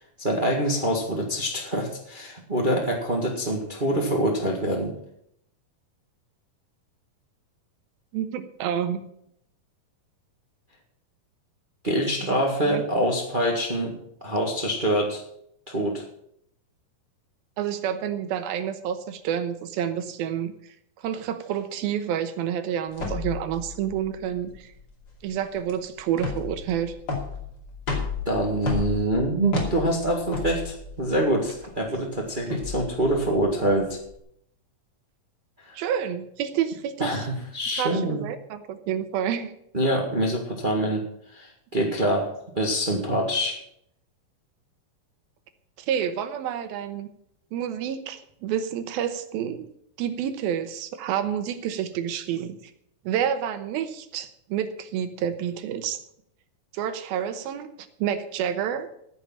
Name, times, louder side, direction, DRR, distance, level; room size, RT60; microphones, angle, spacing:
voice 1, 0.2-4.9 11.8-13.9 14.2-15.2 15.7-16.0 28.2-34.0 35.6-35.8 37.0-38.2 39.7-41.0 41.3-43.6, right 1 dB, 30° right, 0 dB, 0.8 m, -25 dB
voice 2, 8.1-9.1 12.2-12.4 12.7-12.8 17.6-20.7 21.0-24.7 25.2-26.9 35.7-37.3 37.8-39.5 45.8-47.1 47.5-49.7 50.0-52.6 53.0-56.0 56.7-58.9, right 9 dB, 85° right, 10 dB, 2.9 m, -29 dB
sound 1, 22.9-34.1, left 4 dB, 30° left, 2.8 m, -33 dB
14.5 x 7.0 x 7.3 m, 0.73 s
omnidirectional pair, 4.2 m